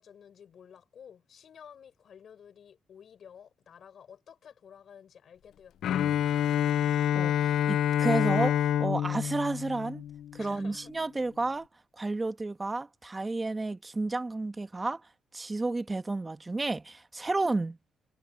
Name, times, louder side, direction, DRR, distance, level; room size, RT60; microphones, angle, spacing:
voice 1, 0.0-6.3 10.4-10.9, left 8 dB, 55° left, 7.1 m, -52 dB
Bowed string instrument, 5.8-10.7, left 10 dB, 75° left, 0.5 m, -27 dB
voice 2, 6.8-10.0 10.3-11.7 12.0-15.0 15.3-17.8, right 2 dB, 20° right, 1.2 m, -31 dB
cardioid pair, 90°, 0 cm